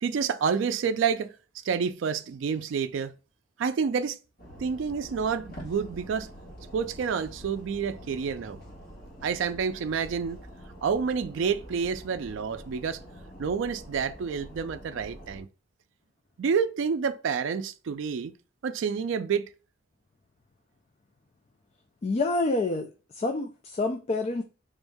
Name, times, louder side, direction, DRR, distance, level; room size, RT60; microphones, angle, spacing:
voice 1, 0.0-1.3 1.6-3.1 3.6-4.2 4.6-6.3 6.7-8.6 9.2-10.4 10.8-13.0 13.4-15.5 16.4-18.3 18.6-19.5, right 6 dB, 70° right, 0.4 m, -28 dB
sound 1, 4.4-15.4, equal, 55° left, 1.5 m, -46 dB
voice 2, 22.0-24.4, left 2 dB, 35° left, 0.3 m, -28 dB
3.8 x 2.6 x 3.4 m
head